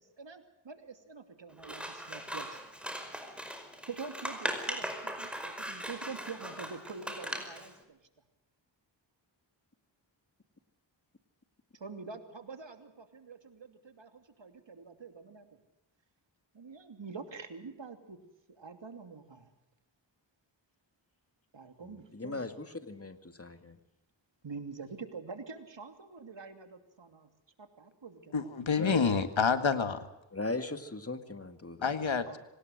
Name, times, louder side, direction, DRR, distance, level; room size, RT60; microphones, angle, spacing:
voice 1, 0.0-2.6 3.9-8.0 11.7-15.5 16.5-18.2 18.6-19.5 21.5-22.4 24.4-27.3 27.6-28.3 32.3-32.4, right 4 dB, 70° right, 7 dB, 2.9 m, -46 dB
Scissors, 1.6-7.7, equal, ahead, 5.1 m, -39 dB
voice 2, 21.8-23.8 28.8-29.0 30.3-31.9, left 2 dB, 30° left, 9 dB, 2.3 m, -39 dB
voice 3, 28.3-30.0 31.8-32.4, left 5 dB, 80° left, 10 dB, 1.9 m, -28 dB
25.0 x 19.0 x 6.4 m, 0.93 s
cardioid pair, 45°, 46 cm